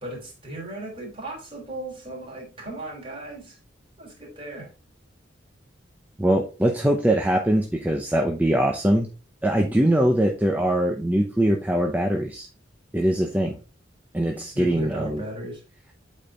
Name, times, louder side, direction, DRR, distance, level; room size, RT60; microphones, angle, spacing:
voice 1, 0.0-3.6 4.0-4.7 14.5-15.6, right 1 dB, 30° right, -2 dB, 3.6 m, -36 dB
voice 2, 6.2-9.1 9.4-12.5 12.9-13.5 14.1-15.2, right 1 dB, 10° right, 2 dB, 0.7 m, -22 dB
8.3 x 4.4 x 3.6 m, 0.32 s
head